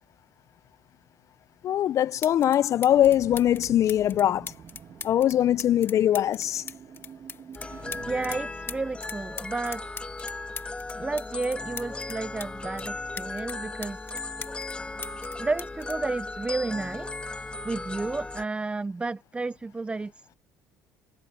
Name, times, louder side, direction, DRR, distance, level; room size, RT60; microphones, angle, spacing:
voice 1, 1.6-4.5 5.0-6.6, left 11 dB, 50° left, 0.7 m, -22 dB
sound 1, 1.7-1.8 2.2-2.6 2.8-8.4 8.7-12.5 12.8-14.8 15.0-16.9 17.8-18.0, left 6 dB, 35° left, 1.9 m, -40 dB
sound 2, 2.8-8.4, right 8 dB, 45° right, 1.8 m, -46 dB
sound 3, 7.5-18.5, left 2 dB, 15° left, 1.7 m, -37 dB
voice 2, 8.1-9.8 11.0-14.1 15.4-17.1 17.6-20.3, right 3 dB, 15° right, 0.6 m, -32 dB
hypercardioid pair, 70°, 7 cm